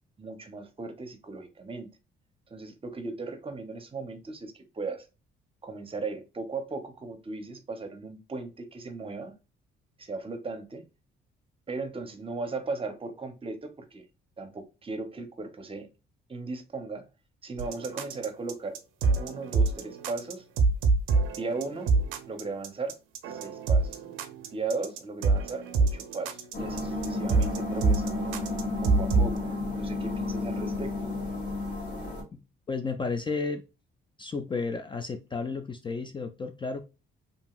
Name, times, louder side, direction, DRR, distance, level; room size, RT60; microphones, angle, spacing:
voice 1, 0.2-1.9 2.5-5.1 5.6-9.3 10.0-10.9 11.7-14.0 14.4-15.9 16.3-17.0 17.4-18.8 19.1-20.4 21.4-21.9 22.3-23.0 23.3-24.0 24.5-28.3 28.8-31.1, right 3 dB, 30° right, 0.7 m, -37 dB
sound 1, 17.6-29.4, right 3 dB, 90° right, 0.5 m, -26 dB
sound 2, 26.5-32.2, left 2 dB, 60° left, 1.5 m, -32 dB
voice 2, 32.7-33.6 34.2-36.8, left 4 dB, 25° left, 0.4 m, -32 dB
2.8 x 2.7 x 2.2 m
cardioid pair, 90°, 20 cm